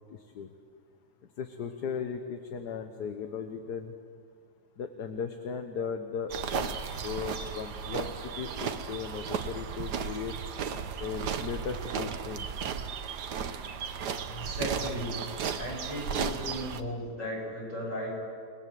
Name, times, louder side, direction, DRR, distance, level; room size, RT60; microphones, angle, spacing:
voice 1, 0.1-0.5 1.4-3.9 4.8-6.7 7.0-10.4 11.0-12.6, left 6 dB, 65° left, 7 dB, 1.6 m, -37 dB
sound 1, 6.3-16.8, right 6 dB, 70° right, 1.6 m, -35 dB
voice 2, 14.3-15.2 15.6-18.1, equal, 45° left, -3 dB, 8.2 m, -36 dB
30.0 x 19.5 x 7.6 m, 2.2 s
omnidirectional pair, 1.9 m